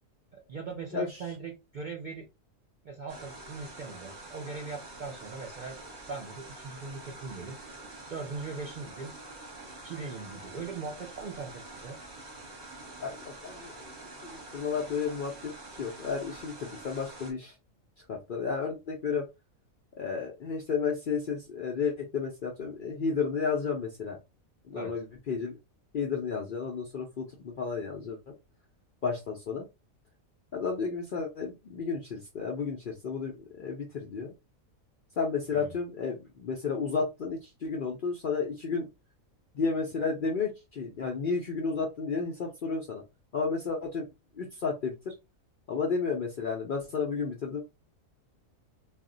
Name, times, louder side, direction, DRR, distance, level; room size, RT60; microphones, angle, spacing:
voice 1, 0.3-2.3 2.8-5.8 6.1-7.8 8.1-9.1 9.8-12.0 24.7-25.0 35.5-35.8, right 4 dB, 60° right, 0 dB, 0.5 m, -40 dB
sound 1, 3.1-17.3, right 2 dB, 40° right, 1.0 m, -46 dB
voice 2, 13.0-13.9 14.2-15.5 15.8-17.5 18.1-19.3 20.0-24.2 24.6-25.6 25.9-28.2 29.0-29.7 30.5-34.3 35.2-38.9 39.5-43.0 43.3-44.1 44.3-45.1 45.7-47.6, left 5 dB, 60° left, 0 dB, 0.5 m, -32 dB
2.4 x 2.1 x 3.7 m, 0.25 s
omnidirectional pair, 1.4 m